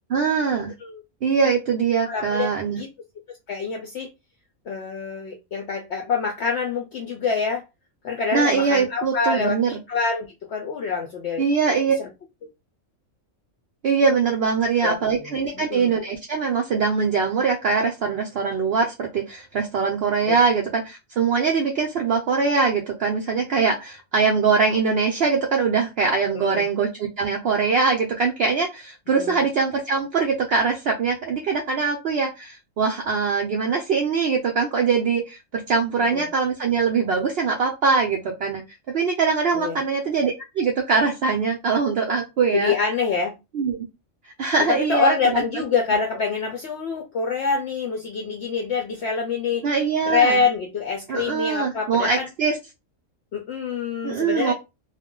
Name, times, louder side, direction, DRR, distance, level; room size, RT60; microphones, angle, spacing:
voice 1, 0.1-0.7 1.2-2.8 8.3-9.7 11.4-12.0 13.8-38.6 38.9-42.7 43.5-43.9 44.4-45.4 49.6-50.4 51.1-52.6 54.0-54.5, right 5 dB, 60° right, 0.7 m, -22 dB
voice 2, 2.1-2.9 3.5-4.1 4.7-7.6 8.0-11.4 12.0-12.1 14.8-15.9 20.3-20.4 26.3-26.7 29.1-29.4 36.0-36.3 39.5-39.8 42.5-43.4 44.7-49.7 50.1-52.3 53.3-54.5, left 5 dB, 65° left, 0.7 m, -26 dB
2.4 x 2.1 x 3.6 m
omnidirectional pair, 1.4 m